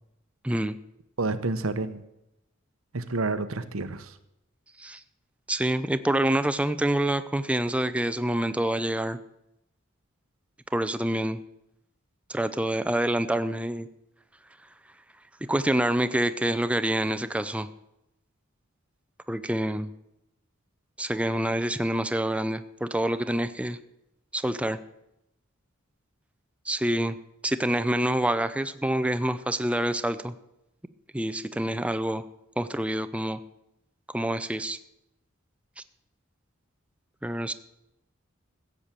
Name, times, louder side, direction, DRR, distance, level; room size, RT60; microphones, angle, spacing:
voice 1, 0.4-0.8 4.8-5.0 5.5-9.2 10.7-11.4 12.3-13.9 15.5-17.7 19.3-19.9 21.0-23.8 24.3-24.8 26.7-27.2 27.4-30.3 31.1-32.2 32.6-33.4 34.1-34.8 37.2-37.5, right 1 dB, 5° right, 11 dB, 0.5 m, -27 dB
voice 2, 1.2-2.0 2.9-4.1, right 3 dB, 85° right, 11 dB, 1.1 m, -29 dB
15.5 x 8.3 x 7.4 m, 0.85 s
head